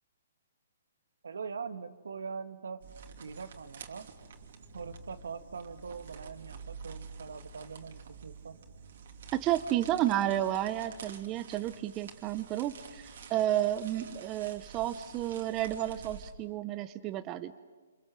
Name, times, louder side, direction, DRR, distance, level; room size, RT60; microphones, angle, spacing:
voice 1, 1.2-2.8 3.2-4.1 4.7-8.6, right 5 dB, 80° right, 9 dB, 1.8 m, -42 dB
sound 1, 2.8-16.3, right 5 dB, 60° right, 2.9 m, -49 dB
voice 2, 9.3-17.6, right 13 dB, 20° right, 11 dB, 0.8 m, -31 dB
28.5 x 26.5 x 7.5 m, 1.4 s
hypercardioid pair, 155°, 0 cm